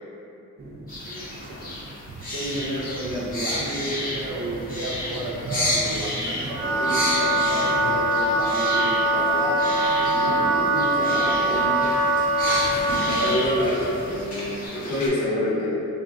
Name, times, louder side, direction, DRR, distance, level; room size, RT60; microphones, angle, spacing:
sound 1, 0.6-14.7, right 1 dB, 35° right, 0.4 m, -39 dB
sound 2, 0.9-15.1, left 1 dB, 30° left, 0.9 m, -32 dB
voice 1, 2.3-9.6 10.1-11.8, right 1 dB, 85° right, -3 dB, 0.6 m, -32 dB
Wind instrument woodwind instrument, 6.4-13.5, right 1 dB, 55° right, 0.9 m, -22 dB
voice 2, 13.0-15.7, left 1 dB, 90° left, -5 dB, 0.7 m, -26 dB
3.4 x 2.4 x 2.3 m, 2.6 s
wide cardioid pair, 115°, 29 cm